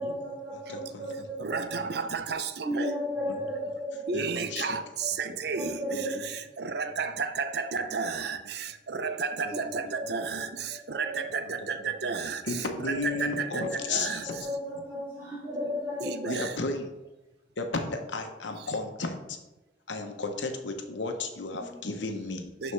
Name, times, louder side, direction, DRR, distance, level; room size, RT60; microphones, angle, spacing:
voice 1, 0.0-2.0 2.6-4.6 5.0-5.1 5.5-6.4 8.9-9.1 9.5-10.2 10.7-11.4 11.7-11.8 13.0-16.5 21.6-21.7 22.0-22.1, equal, 15° right, -8 dB, 2.5 m, -36 dB
voice 2, 0.5-1.9 4.1-4.8 5.3-5.4 5.9-6.0 9.4-9.5 12.0-12.1 12.5-14.5 16.3-16.9 17.6-19.4 19.9-22.7, left 3 dB, 75° left, 5 dB, 0.9 m, -34 dB
voice 3, 1.4-2.9 4.1-14.4 16.0-16.5 22.6-22.7, right 5 dB, 60° right, 10 dB, 0.5 m, -33 dB
11.0 x 4.3 x 3.3 m, 1.0 s
head